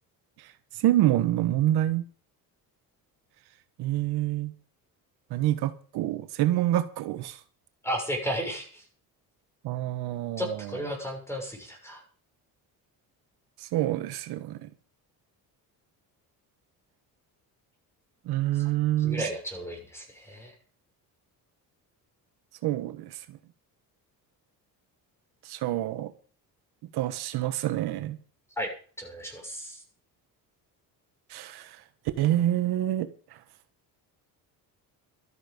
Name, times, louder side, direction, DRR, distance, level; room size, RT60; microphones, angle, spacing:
voice 1, 0.4-2.0 3.8-4.5 5.3-7.4 9.6-10.8 13.6-14.7 18.2-19.3 22.6-23.4 25.4-26.1 26.9-28.2 31.3-31.8 32.2-33.1, right 13 dB, 80° right, 1.4 m, -27 dB
voice 2, 7.8-8.8 10.4-12.0 18.5-18.6 19.0-20.5 28.6-28.7 29.0-29.8, equal, 5° left, 6.5 m, -34 dB
13.0 x 13.0 x 5.3 m
cardioid pair, 140°, 38 cm